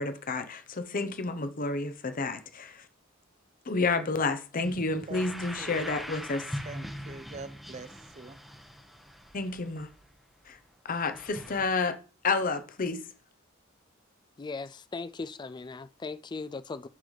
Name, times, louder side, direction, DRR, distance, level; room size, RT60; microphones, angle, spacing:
voice 1, 0.0-2.8 3.7-6.4 9.3-9.9 10.5-10.6 10.8-12.0 12.2-13.0, left 3 dB, 45° left, 0.7 m, -30 dB
sound 1, 4.6-10.6 11.1-11.7, equal, ahead, 0.8 m, -42 dB
voice 2, 5.1-5.9 6.6-8.4, right 4 dB, 35° right, 0.6 m, -44 dB
voice 3, 14.4-16.9, left 4 dB, 20° left, 0.3 m, -38 dB
11.0 x 4.0 x 3.2 m
head